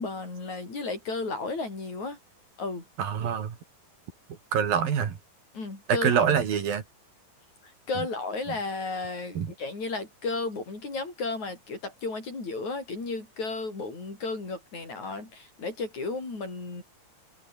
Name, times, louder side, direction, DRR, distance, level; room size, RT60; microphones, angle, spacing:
voice 1, 0.0-2.2 2.6-2.8 5.5-6.3 7.9-16.8, left 3 dB, 50° left, 8.4 m, -33 dB
voice 2, 3.0-3.6 4.5-5.2 5.9-6.8 9.4-9.5, right 8 dB, 70° right, 4.6 m, -25 dB
omnidirectional pair, 4.2 m